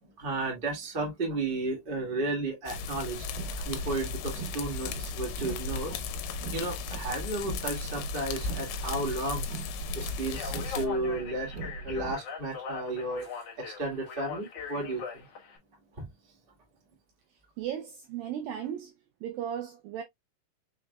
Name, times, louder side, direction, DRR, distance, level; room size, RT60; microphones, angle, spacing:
voice 1, 0.0-3.3 3.6-5.9 6.5-9.5 9.9-13.3 13.6-15.2 16.0-16.1, right 2 dB, 35° right, 0.8 m, -33 dB
sound 1, 2.7-10.9, left 5 dB, 85° left, 2.8 m, -36 dB
Car, 3.1-12.1, right 5 dB, 75° right, 2.8 m, -42 dB
Speech, 10.2-15.6, left 5 dB, 65° left, 1.6 m, -41 dB
voice 2, 17.6-18.9 19.2-20.0, right 9 dB, 90° right, 2.0 m, -36 dB
6.4 x 3.5 x 2.2 m
omnidirectional pair, 4.8 m